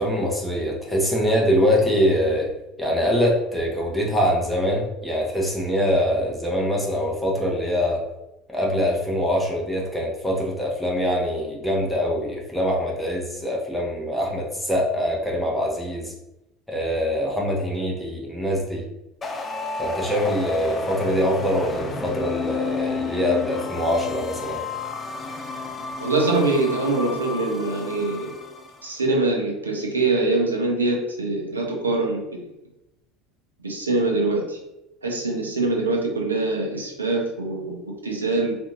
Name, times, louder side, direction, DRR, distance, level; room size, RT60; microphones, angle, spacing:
voice 1, 0.0-2.5 2.8-8.0 8.5-16.1 16.7-18.8 19.8-24.6, equal, ahead, -3 dB, 0.8 m, -23 dB
sound 1, 19.2-28.8, left 4 dB, 25° left, 0.4 m, -31 dB
voice 2, 26.0-28.3 28.8-32.3 33.6-34.6 35.0-38.6, right 2 dB, 85° right, 0 dB, 0.6 m, -23 dB
2.8 x 2.6 x 2.3 m, 0.92 s
figure-of-eight pair, 65°, 0 cm